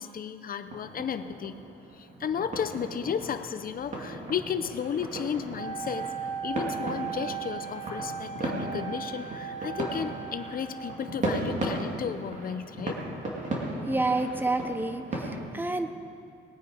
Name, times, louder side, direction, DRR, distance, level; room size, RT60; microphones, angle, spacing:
voice 1, 0.0-1.6 1.9-6.2 6.4-13.0, left 7 dB, 45° left, 11 dB, 0.6 m, -34 dB
sound 1, 0.7-15.4, right 1 dB, 35° right, 2.2 m, -36 dB
Wind instrument woodwind instrument, 5.5-11.0, right 8 dB, 75° right, 2.7 m, -37 dB
voice 2, 13.9-15.0 15.5-15.9, right 2 dB, 10° right, 8 dB, 0.6 m, -27 dB
19.5 x 8.9 x 4.9 m, 2.4 s
cardioid pair, 150°, 20 cm